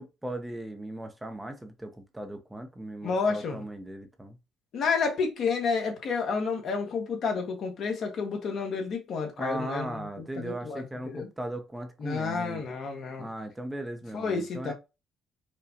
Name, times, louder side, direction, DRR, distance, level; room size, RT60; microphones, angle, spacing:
voice 1, 0.0-4.4 9.4-12.6 13.2-14.7, right 1 dB, 10° right, 0.7 m, -37 dB
voice 2, 3.0-3.6 4.7-11.3 12.0-13.3 14.1-14.7, left 5 dB, 60° left, 1.3 m, -30 dB
5.0 x 2.3 x 2.8 m
cardioid pair, 85°, 0 cm